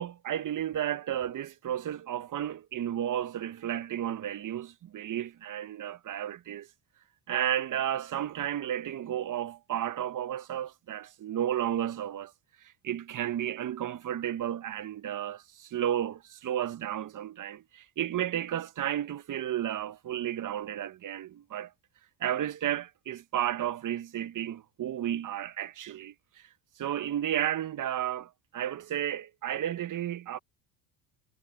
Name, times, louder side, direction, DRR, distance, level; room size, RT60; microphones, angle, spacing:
voice 1, 0.0-6.7 7.3-12.3 12.6-21.7 22.2-26.5 26.8-30.4, right 11 dB, 40° right, 1.0 m, -33 dB
supercardioid pair, 85°, 50 cm